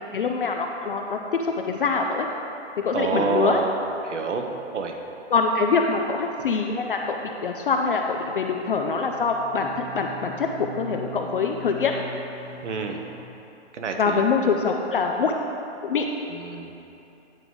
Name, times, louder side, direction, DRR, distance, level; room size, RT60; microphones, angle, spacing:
voice 1, 0.1-2.3 2.8-3.6 5.3-11.9 13.9-15.3 15.8-16.1, left 5 dB, 50° left, 2 dB, 0.4 m, -24 dB
voice 2, 2.9-3.7 4.0-4.5 4.7-5.0 12.6-13.0 13.7-14.2 16.3-16.7, right 5 dB, 85° right, 4 dB, 1.0 m, -27 dB
sound 1, 6.3-13.2, right 1 dB, 40° right, 1.0 m, -43 dB
9.0 x 3.7 x 4.6 m, 2.8 s
hypercardioid pair, 170°, 35 cm